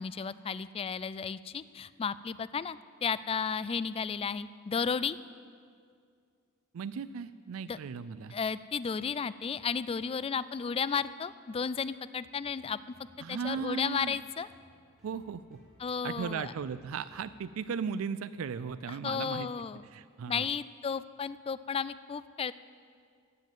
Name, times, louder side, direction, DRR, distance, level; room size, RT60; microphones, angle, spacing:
voice 1, 0.0-5.2 7.7-7.8 8.3-12.8 13.3-14.5 15.8-16.5 18.9-19.9 20.3-22.5, left 6 dB, 30° left, 17 dB, 0.3 m, -33 dB
voice 2, 6.7-8.3 13.2-14.2 15.0-15.6 16.0-20.5, right 6 dB, 90° right, 14 dB, 0.4 m, -37 dB
sound 1, 12.4-17.6, equal, ahead, 3.8 m, -63 dB
15.0 x 7.7 x 9.2 m, 2.2 s
head